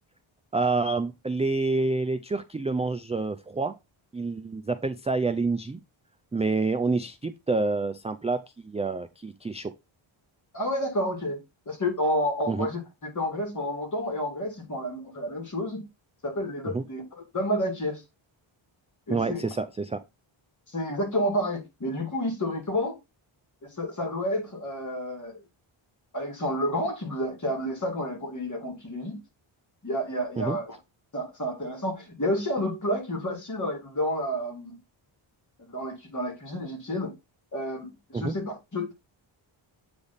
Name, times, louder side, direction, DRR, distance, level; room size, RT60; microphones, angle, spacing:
voice 1, 0.5-3.7 4.1-5.8 6.3-9.7 12.5-12.7 16.7-16.8 19.1-20.0 30.4-30.6 38.1-38.3, right 3 dB, 15° right, 0.4 m, -28 dB
voice 2, 10.5-11.4 11.7-15.8 16.2-17.0 17.3-18.0 19.1-19.4 20.7-23.0 23.8-25.4 26.1-29.2 29.8-30.8 31.1-34.8 35.6-37.1 37.5-38.9, equal, 35° left, 2.5 m, -30 dB
8.2 x 3.5 x 4.0 m
wide cardioid pair, 125°, 50 cm